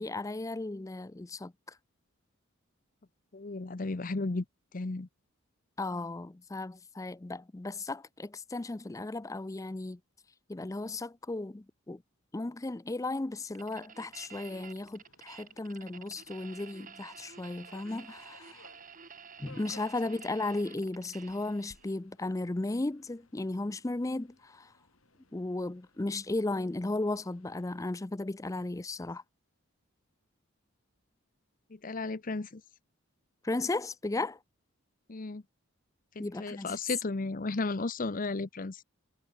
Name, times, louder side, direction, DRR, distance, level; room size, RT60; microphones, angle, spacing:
voice 1, 0.0-1.8 5.8-10.0 10.5-12.0 12.3-18.7 19.4-24.7 25.3-29.2 33.4-34.4 36.2-36.8, left 2 dB, 15° left, 0.4 m, -35 dB
voice 2, 3.3-4.4 4.7-5.1 31.7-32.6 35.1-35.4 36.1-38.8, left 3 dB, 40° left, 0.7 m, -34 dB
sound 1, 13.5-21.9, right 6 dB, 40° right, 1.8 m, -51 dB
Subway metro underground, 14.0-27.8, left 3 dB, 90° left, 5.5 m, -62 dB
head